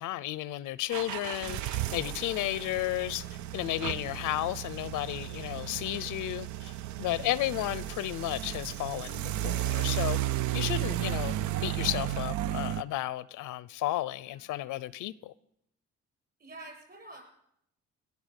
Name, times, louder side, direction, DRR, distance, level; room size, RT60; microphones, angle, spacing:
voice 1, 0.0-3.3 3.5-10.2 10.5-15.3, left 15 dB, 90° left, 0.6 m, -33 dB
sound 1, 0.9-12.8, right 13 dB, 75° right, 0.5 m, -34 dB
voice 2, 14.1-14.6 16.4-17.2, right 2 dB, 35° right, 7.8 m, -50 dB
18.5 x 7.1 x 8.1 m
cardioid pair, 90°, 30 cm